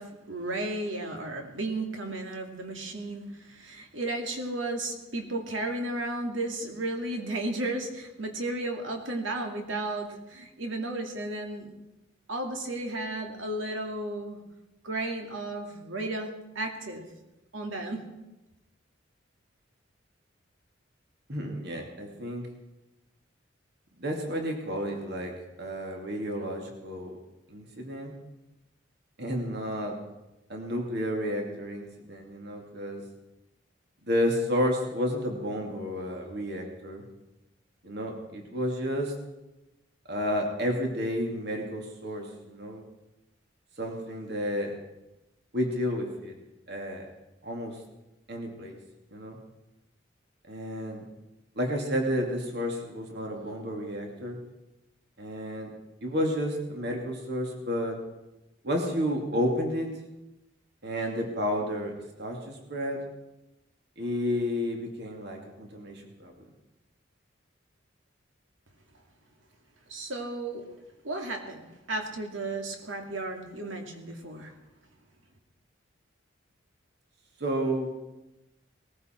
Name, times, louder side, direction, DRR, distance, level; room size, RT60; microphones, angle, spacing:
voice 1, 0.0-11.7 12.3-14.4 14.8-17.0 17.5-18.0 69.9-70.6 71.0-71.6 71.9-74.5, right 2 dB, 80° right, 3 dB, 2.5 m, -34 dB
voice 2, 21.3-22.5 24.0-27.2 27.5-28.2 29.2-29.9 30.5-33.0 34.0-37.0 37.8-39.1 40.1-42.8 43.8-44.8 45.5-46.3 46.7-47.1 47.4-47.8 48.3-48.7 49.1-49.4 50.5-51.0 51.6-54.4 55.2-55.7 56.0-58.0 58.6-59.9 60.8-61.9 62.2-63.0 64.0-66.3 77.4-77.9, equal, 55° right, 2 dB, 2.6 m, -31 dB
19.5 x 14.5 x 4.5 m, 0.98 s
head